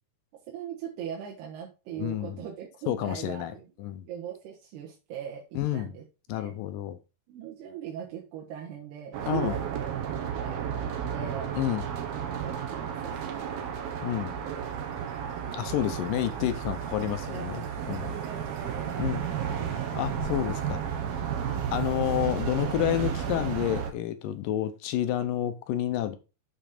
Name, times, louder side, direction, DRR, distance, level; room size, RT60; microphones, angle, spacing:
voice 1, 0.5-3.7 4.1-6.0 6.3-6.6 7.3-9.8 10.2-11.5 12.4-13.6 15.4-15.8 16.5-19.0 19.3-19.5 21.3-21.6, right 9 dB, 85° right, 3.4 m, -41 dB
voice 2, 2.0-2.4 2.9-3.5 3.8-4.1 5.6-5.9 6.3-7.0 9.3-9.5 11.6-11.8 14.0-14.4 15.5-18.2 19.0-19.2 19.9-20.8 21.7-26.2, left 11 dB, 75° left, 2.1 m, -29 dB
sound 1, 9.1-23.9, right 8 dB, 70° right, 3.0 m, -33 dB
7.4 x 5.6 x 5.0 m
omnidirectional pair, 4.5 m